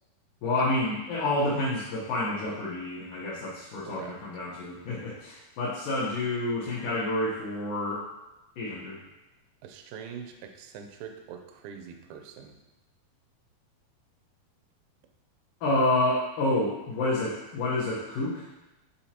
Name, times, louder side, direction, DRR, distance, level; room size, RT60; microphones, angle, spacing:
voice 1, 0.4-8.1 8.6-9.0 15.6-18.4, left 2 dB, 70° left, -6 dB, 2.3 m, -29 dB
voice 2, 9.6-12.6 15.7-15.8, right 7 dB, 80° right, 5 dB, 2.1 m, -43 dB
8.2 x 4.4 x 2.9 m, 0.98 s
omnidirectional pair, 4.4 m